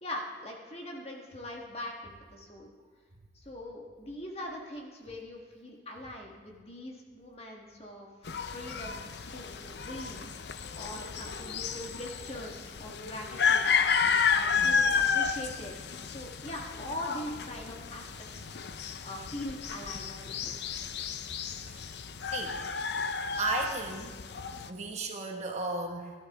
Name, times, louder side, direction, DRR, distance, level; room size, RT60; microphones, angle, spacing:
voice 1, 0.0-2.7 3.3-13.7 14.3-20.5, left 1 dB, 35° left, 0 dB, 1.6 m, -42 dB
sound 1, 8.3-24.7, left 6 dB, 70° left, 0.6 m, -32 dB
voice 2, 22.3-22.6 23.4-24.1 24.7-26.1, right 3 dB, 40° right, 1 dB, 1.4 m, -35 dB
16.0 x 12.5 x 3.6 m, 1.5 s
head